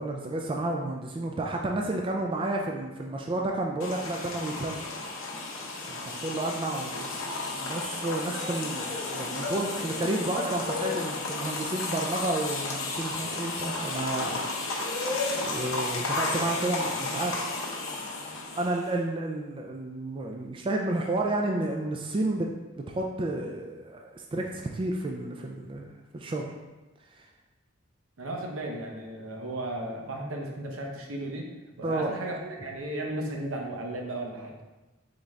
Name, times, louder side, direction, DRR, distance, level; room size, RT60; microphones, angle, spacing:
voice 1, 0.0-4.9 5.9-14.4 15.4-17.4 18.5-22.5 22.8-26.5 27.1-27.3 31.8-32.1, right 2 dB, 25° right, 1 dB, 0.3 m, -31 dB
sound 1, 3.8-18.9, left 3 dB, 75° left, 0.7 m, -33 dB
voice 2, 28.2-31.5 31.8-34.5, right 1 dB, 85° right, 0 dB, 0.8 m, -35 dB
3.9 x 3.5 x 3.2 m, 1.1 s
head